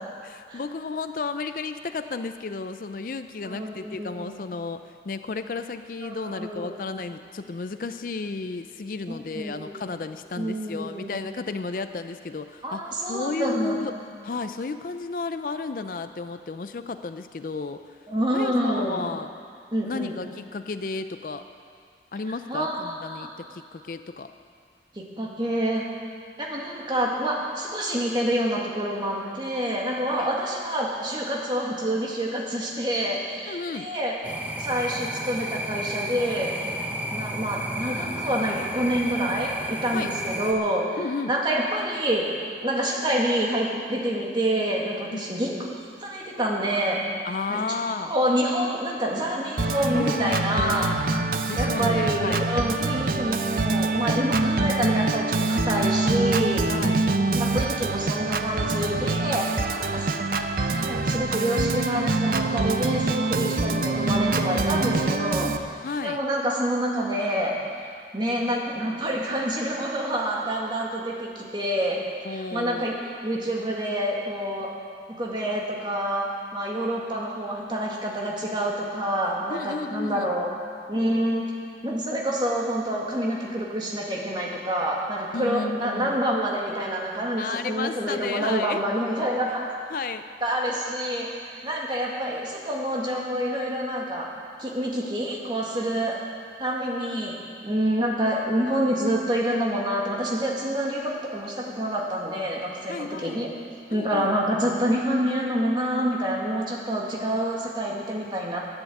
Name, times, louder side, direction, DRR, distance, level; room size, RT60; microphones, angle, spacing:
voice 1, 0.2-12.8 13.1-13.9 14.2-18.0 18.3-19.3 19.8-21.5 22.1-24.3 30.2-30.3 33.5-33.9 39.9-40.1 41.0-41.3 45.1-45.3 47.2-48.1 49.9-51.0 51.5-52.4 56.7-57.1 64.9-66.2 72.2-72.9 79.5-80.3 85.3-86.2 87.4-88.8 89.9-90.3 102.9-103.5 103.9-104.3, left 4 dB, 50° left, 9 dB, 0.4 m, -33 dB
voice 2, 3.4-4.3 6.0-6.8 9.1-9.8 10.4-11.2 12.6-13.9 18.1-19.0 19.7-20.1 22.5-23.3 25.0-25.8 26.4-34.2 34.6-36.5 37.1-41.0 41.3-42.3 42.6-47.0 47.5-47.6 48.1-50.9 51.6-56.6 57.3-65.5 66.0-67.5 68.1-72.0 72.3-72.9 73.2-74.7 75.2-80.5 80.9-81.4 81.8-89.7 90.4-94.3 94.6-96.2 96.6-97.4 97.6-103.5 103.9-108.6, equal, 25° right, -2 dB, 1.9 m, -27 dB
sound 1, 34.2-40.5, right 1 dB, 10° right, 0.8 m, -32 dB
Organ, 49.6-65.6, right 3 dB, 55° right, 0.6 m, -25 dB
11.5 x 10.0 x 8.3 m, 2.2 s
head